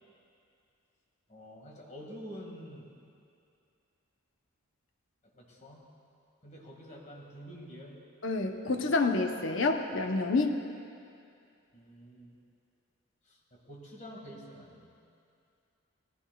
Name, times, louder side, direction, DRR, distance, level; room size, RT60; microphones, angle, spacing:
voice 1, 1.3-2.9 5.3-5.9 6.4-8.0 11.7-12.4 13.2-15.0, equal, 35° left, -2 dB, 2.0 m, -47 dB
voice 2, 8.2-10.6, left 3 dB, 60° left, 4 dB, 0.8 m, -28 dB
17.5 x 15.0 x 2.3 m, 2.5 s
head